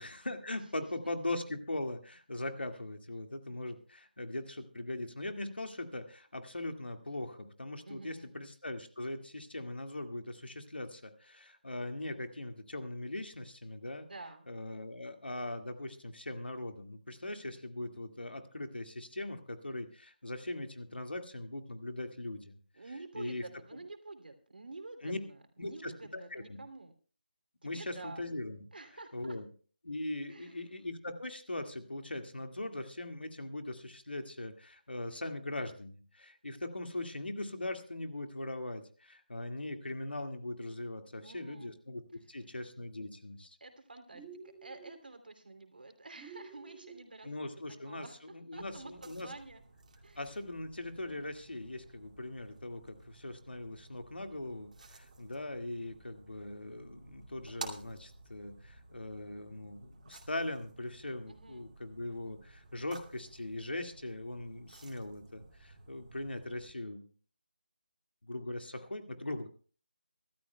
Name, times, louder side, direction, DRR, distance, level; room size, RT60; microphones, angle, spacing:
voice 1, 0.0-14.1 14.5-22.6 23.2-23.4 25.0-25.2 25.6-26.6 27.6-28.6 29.1-29.5 29.8-42.0 42.3-43.6 47.2-48.1 48.3-49.3 50.2-67.1 68.2-69.5, left 2 dB, 85° left, 6 dB, 2.0 m, -40 dB
voice 2, 7.8-8.3 14.0-14.5 22.7-26.9 27.6-28.3 28.7-29.4 30.3-30.6 41.2-41.7 42.1-42.2 43.6-47.5 47.9-49.6 50.0-50.2 61.3-61.7, right 3 dB, 65° right, 6 dB, 2.9 m, -49 dB
sound 1, 44.1-45.0 46.2-47.1, right 5 dB, 10° right, 0.7 m, -51 dB
sound 2, 48.5-66.7, right 3 dB, 45° right, 2.5 m, -53 dB
24.5 x 13.0 x 2.3 m, 0.41 s
figure-of-eight pair, 165°, 5 cm